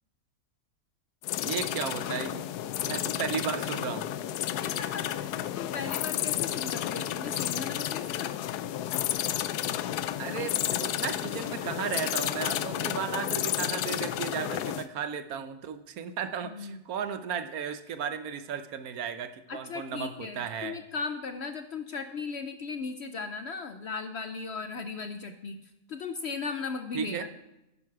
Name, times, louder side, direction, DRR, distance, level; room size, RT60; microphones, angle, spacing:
sound 1, 1.2-14.9, left 12 dB, 90° left, 1.1 m, -31 dB
voice 1, 1.4-2.4 2.8-4.1 10.2-20.8 26.9-27.3, right 7 dB, 70° right, 10 dB, 1.2 m, -35 dB
voice 2, 4.4-8.3 16.4-16.8 19.5-25.6 25.9-27.3, left 4 dB, 60° left, 8 dB, 0.7 m, -37 dB
11.0 x 9.7 x 4.7 m, 0.90 s
omnidirectional pair, 1.6 m